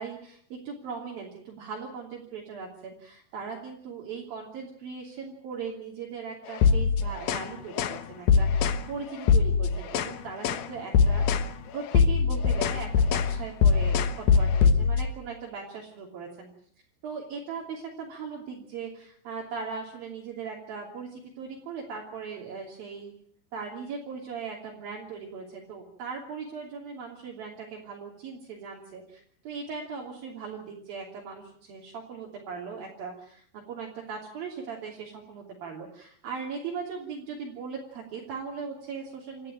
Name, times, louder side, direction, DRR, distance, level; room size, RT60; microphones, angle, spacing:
voice 1, 0.0-16.5 17.0-23.1 23.5-39.5, right 5 dB, 55° right, -2 dB, 4.6 m, -39 dB
sound 1, 6.5-7.5 7.8-8.0 8.3-8.8 9.2-10.2 10.4-10.7 10.9-11.5 11.8-15.1, left 6 dB, 65° left, 2.6 m, -22 dB
28.0 x 14.5 x 8.8 m, 0.64 s
omnidirectional pair, 5.2 m